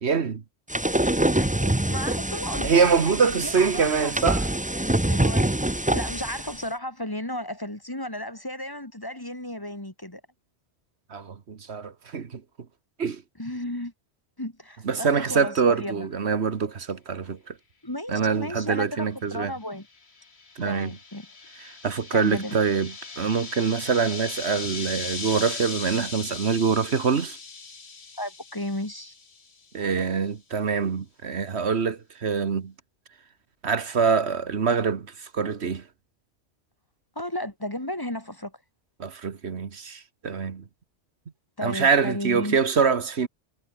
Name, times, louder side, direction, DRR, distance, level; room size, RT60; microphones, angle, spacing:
voice 1, 0.0-0.4 2.6-4.5 11.1-12.4 13.0-13.2 14.8-17.6 18.1-19.5 20.6-21.0 21.6-27.4 29.7-32.7 33.6-35.9 39.0-40.6 41.6-43.3, right 5 dB, 70° right, 1.6 m, -25 dB
sound 1, 0.7-6.6, right 1 dB, 10° right, 0.9 m, -25 dB
voice 2, 1.4-4.2 5.1-10.2 13.4-13.9 14.4-16.1 17.8-19.9 20.6-21.3 22.1-22.6 28.2-29.1 37.2-38.6 41.6-42.6, left 1 dB, 20° left, 2.2 m, -34 dB
sound 2, 19.7-29.5, left 4 dB, 70° left, 2.2 m, -38 dB
omnidirectional pair, 1.1 m